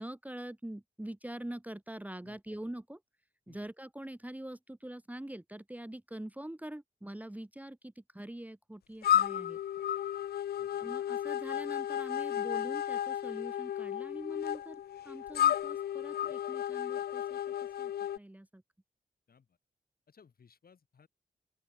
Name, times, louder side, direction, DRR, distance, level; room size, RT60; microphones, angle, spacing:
voice 1, 0.0-3.0 3.5-9.6 10.8-18.6, right 1 dB, 10° right, 0.9 m, -44 dB
voice 2, 2.2-2.6 3.5-3.7 10.5-10.9 19.3-19.6 20.1-21.1, left 6 dB, 70° left, 5.5 m, -62 dB
sound 1, 9.0-18.2, left 10 dB, 85° left, 0.5 m, -33 dB
open air
cardioid pair, 50°, 16 cm